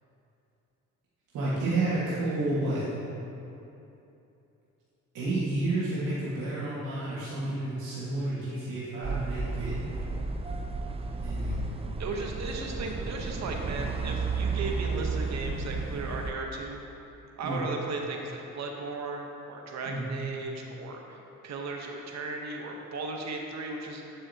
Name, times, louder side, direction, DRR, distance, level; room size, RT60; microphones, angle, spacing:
voice 1, 1.3-2.8 5.1-9.9 11.2-11.6 17.4-17.6 19.9-20.2, right 2 dB, 85° right, -10 dB, 1.8 m, -30 dB
sound 1, 9.0-16.3, right 4 dB, 20° right, 0.5 m, -32 dB
voice 2, 12.0-16.8 17.4-21.2 21.4-24.0, right 3 dB, 65° right, 1 dB, 1.0 m, -36 dB
11.0 x 6.8 x 2.8 m, 2.9 s
cardioid pair, 90°, 30 cm